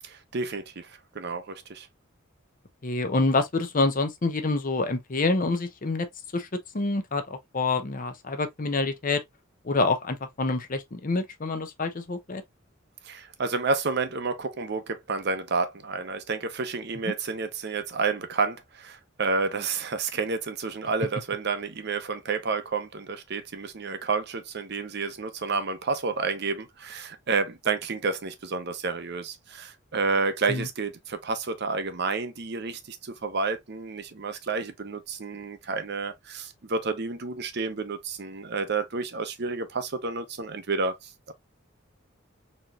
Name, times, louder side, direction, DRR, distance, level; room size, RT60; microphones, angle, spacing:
voice 1, 0.0-1.9 13.0-41.3, right 4 dB, 55° right, 0.7 m, -30 dB
voice 2, 2.8-6.1 6.3-6.5 6.7-9.2 9.6-12.4 30.5-30.6, left 3 dB, 40° left, 0.7 m, -27 dB
4.2 x 3.0 x 2.4 m
head